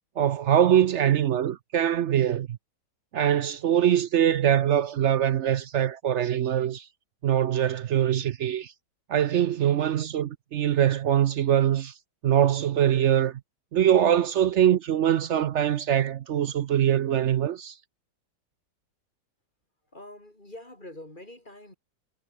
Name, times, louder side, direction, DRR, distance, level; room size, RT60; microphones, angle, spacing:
voice 1, 0.2-2.6 3.1-6.9 7.2-8.7 9.1-11.9 12.2-13.4 13.7-17.8, right 10 dB, 70° right, 0.6 m, -23 dB
voice 2, 19.9-21.8, left 1 dB, 25° left, 6.5 m, -45 dB
omnidirectional pair, 1.9 m